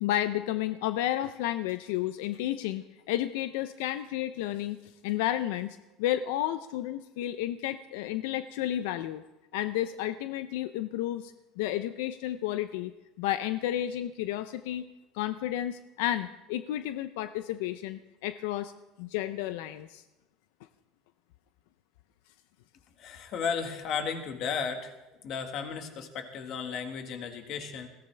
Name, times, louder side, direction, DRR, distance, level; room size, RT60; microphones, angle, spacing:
voice 1, 0.0-9.2 9.5-12.9 13.2-14.9 15.1-18.7 19.0-20.0, left 13 dB, 85° left, 11 dB, 0.5 m, -32 dB
voice 2, 23.0-24.9 25.2-27.9, left 6 dB, 45° left, 6 dB, 1.6 m, -34 dB
21.0 x 16.0 x 3.4 m, 1.0 s
cardioid pair, 160°, 0 cm